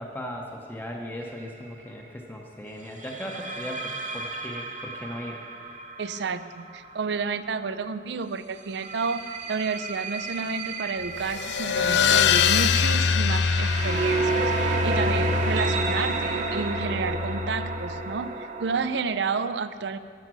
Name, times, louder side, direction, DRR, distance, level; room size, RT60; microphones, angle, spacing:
voice 1, 0.0-5.4, equal, 10° left, 0 dB, 0.8 m, -37 dB
sound 1, 1.2-1.5 3.0-7.8 8.6-19.0, right 3 dB, 45° right, 1.0 m, -31 dB
voice 2, 6.0-9.2 9.5-18.3 18.6-20.0, right 5 dB, 70° right, 13 dB, 0.5 m, -30 dB
sound 2, 11.1-18.2, left 6 dB, 70° left, 0.4 m, -25 dB
14.0 x 7.8 x 6.1 m, 2.3 s
head